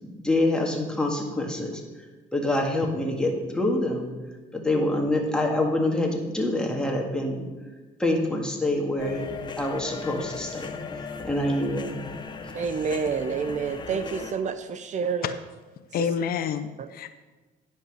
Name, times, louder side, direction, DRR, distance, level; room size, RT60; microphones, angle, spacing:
voice 1, 0.0-1.8 2.3-4.1 4.5-7.5 8.0-9.2 9.6-10.8 11.2-12.1, left 1 dB, 5° left, -1 dB, 1.9 m, -26 dB
sound 1, 9.0-14.3, left 5 dB, 25° left, 0.9 m, -38 dB
voice 2, 12.5-15.2, right 6 dB, 45° right, 11 dB, 0.6 m, -28 dB
voice 3, 15.9-17.1, left 8 dB, 60° left, 11 dB, 0.6 m, -28 dB
10.0 x 5.4 x 6.4 m, 1.3 s
cardioid pair, 110°, 17 cm